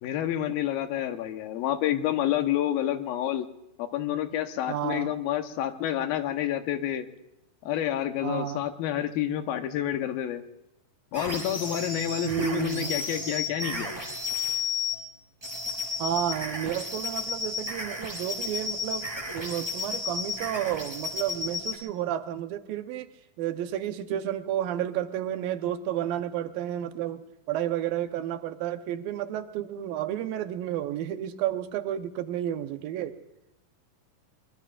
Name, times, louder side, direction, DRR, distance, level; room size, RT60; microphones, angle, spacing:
voice 1, 0.0-3.5 3.8-7.1 7.7-10.4 11.1-13.9, left 11 dB, 90° left, 7 dB, 2.9 m, -29 dB
voice 2, 4.7-5.2 8.2-8.6 12.2-12.9 16.0-19.1 19.3-23.1 23.4-27.2 27.5-33.1, right 11 dB, 80° right, 8 dB, 2.6 m, -31 dB
sound 1, 11.1-15.0 15.4-21.8, left 3 dB, 5° right, 3.1 m, -33 dB
23.5 x 21.5 x 2.5 m, 0.87 s
omnidirectional pair, 4.1 m